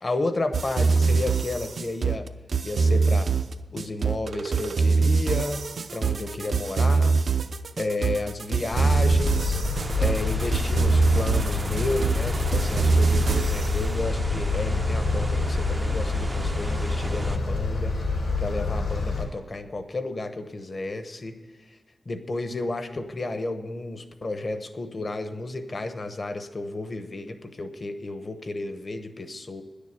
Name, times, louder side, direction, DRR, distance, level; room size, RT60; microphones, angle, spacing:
voice 1, 0.0-2.3 2.6-3.3 3.7-5.6 5.9-7.2 7.8-9.6 10.0-17.9 18.4-21.4 22.1-29.6, left 2 dB, 40° left, 8 dB, 0.9 m, -32 dB
sound 1, 0.5-13.8, right 4 dB, 70° right, 0.5 m, -24 dB
sound 2, 8.7-19.3, left 3 dB, 85° left, 3.8 m, -27 dB
sound 3, 9.7-17.4, right 2 dB, 20° right, 0.4 m, -38 dB
10.5 x 6.8 x 9.0 m, 1.4 s
wide cardioid pair, 145°, 0 cm